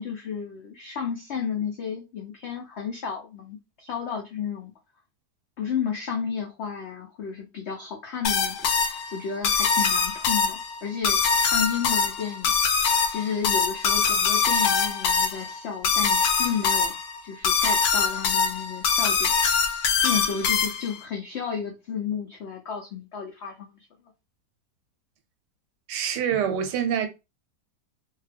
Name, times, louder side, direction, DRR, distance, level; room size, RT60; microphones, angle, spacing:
voice 1, 0.0-4.7 5.6-11.2 11.5-12.6 13.1-16.9 17.2-19.6 20.0-23.8, left 7 dB, 90° left, 0.5 m, -32 dB
sound 1, 8.2-21.0, left 5 dB, 70° left, 1.0 m, -23 dB
voice 2, 25.9-27.1, right 8 dB, 85° right, 1.2 m, -25 dB
2.7 x 2.2 x 3.3 m
omnidirectional pair, 1.8 m